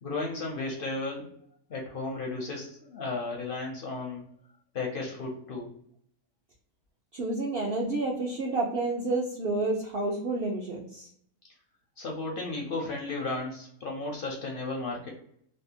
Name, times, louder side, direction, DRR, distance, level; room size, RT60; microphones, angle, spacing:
voice 1, 0.0-1.3 1.7-4.2 4.7-5.7 12.0-15.1, left 3 dB, 60° left, -1 dB, 0.6 m, -34 dB
voice 2, 7.1-11.1, right 2 dB, 75° right, -2 dB, 0.5 m, -30 dB
2.7 x 2.1 x 2.7 m, 0.67 s
omnidirectional pair, 1.6 m